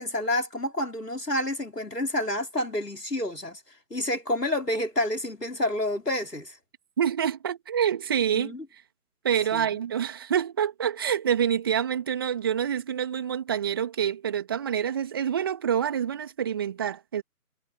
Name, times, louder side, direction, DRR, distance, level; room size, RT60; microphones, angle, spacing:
voice 1, 0.0-3.6 3.9-6.6 8.3-8.6 9.5-9.7, left 1 dB, 85° left, 4.8 m, -29 dB
voice 2, 7.0-8.8 9.2-17.2, right 8 dB, 15° right, 2.6 m, -27 dB
figure-of-eight pair, 160°, 46 cm